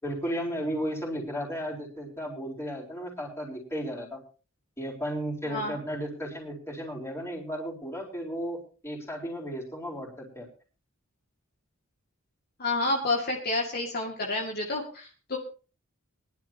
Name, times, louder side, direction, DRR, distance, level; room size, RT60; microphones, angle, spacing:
voice 1, 0.0-4.2 4.8-10.5, equal, 10° left, -3 dB, 4.3 m, -34 dB
voice 2, 5.5-5.8 12.6-15.4, left 2 dB, 50° left, -1 dB, 2.3 m, -29 dB
22.0 x 11.5 x 2.9 m, 0.36 s
head